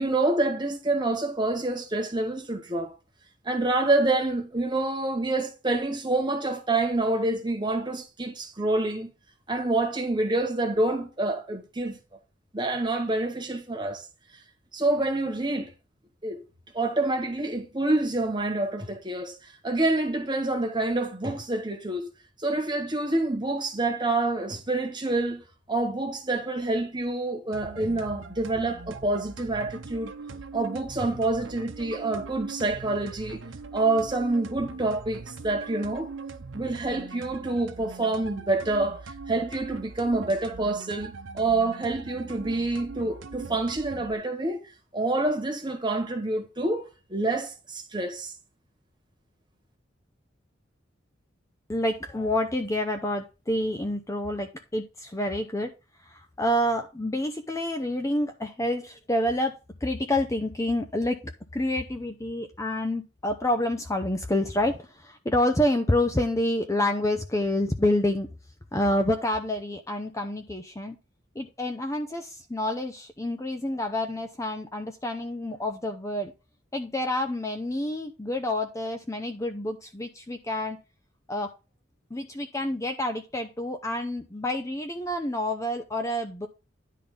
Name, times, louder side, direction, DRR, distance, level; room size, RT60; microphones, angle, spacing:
voice 1, 0.0-2.9 3.5-9.1 9.5-12.0 12.5-14.1 14.7-15.7 16.2-16.4 16.7-22.1 22.4-30.1 30.5-33.4 33.7-36.1 36.5-44.6 44.9-48.3, right 2 dB, 25° right, 1.7 m, -27 dB
sound 1, 27.5-44.1, right 4 dB, 80° right, 0.8 m, -41 dB
voice 2, 51.7-55.7 56.0-68.3 68.7-71.0 71.4-76.3 76.7-80.8 81.3-81.5 82.1-86.5, left 1 dB, 15° left, 0.6 m, -28 dB
10.5 x 3.7 x 5.3 m
head